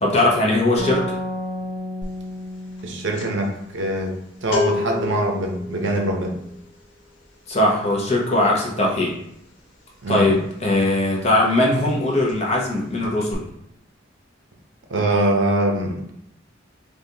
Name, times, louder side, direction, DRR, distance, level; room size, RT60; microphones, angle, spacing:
voice 1, 0.0-1.0 7.5-9.1 10.1-13.5, left 1 dB, 35° left, -3 dB, 0.7 m, -20 dB
sound 1, 0.8-4.3, left 1 dB, 45° right, 1.0 m, -32 dB
sound 2, 2.0-2.3 2.5-11.1 11.4-11.6 11.9-12.7 13.0-13.3, left 4 dB, 90° left, 0.7 m, -31 dB
voice 2, 2.8-6.4 10.0-10.4 14.9-16.2, right 1 dB, 80° right, 1 dB, 0.7 m, -23 dB
3.5 x 2.5 x 2.8 m, 0.78 s
head